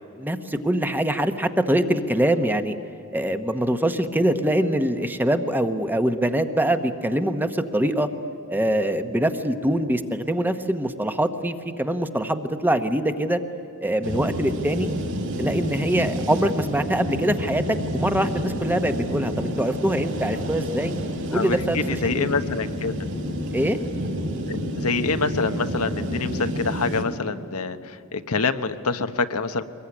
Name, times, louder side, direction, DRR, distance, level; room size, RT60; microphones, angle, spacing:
voice 1, 0.2-2.8 3.1-8.1 8.5-13.4 13.8-14.9 15.4-20.9 21.3-22.3 23.5-23.8, right 1 dB, 10° right, 8 dB, 1.1 m, -24 dB
sound 1, 14.0-27.0, equal, 60° right, 4.3 m, -29 dB
voice 2, 21.3-22.9 24.5-29.6, left 4 dB, 80° left, 9 dB, 1.1 m, -26 dB
24.0 x 21.5 x 10.0 m, 2.8 s
head